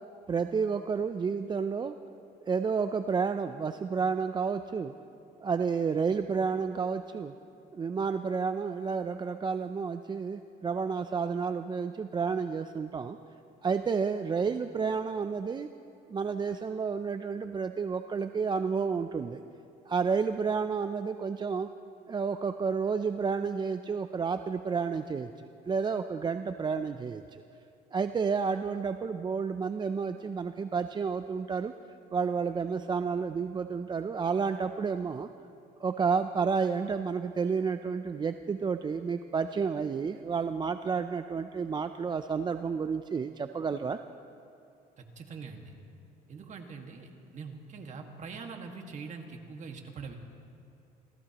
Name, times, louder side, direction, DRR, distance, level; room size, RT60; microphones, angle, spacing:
voice 1, 0.3-1.9 2.5-4.9 5.4-7.3 7.7-13.2 13.6-15.7 16.1-19.4 19.9-21.7 22.1-27.4 27.9-31.7 32.1-35.3 35.8-44.0, right 5 dB, 25° right, 9 dB, 0.4 m, -30 dB
voice 2, 45.0-45.7 46.3-50.1, right 5 dB, 45° right, 3 dB, 1.8 m, -43 dB
27.0 x 17.0 x 3.0 m, 2.6 s
cardioid pair, 110°, 17 cm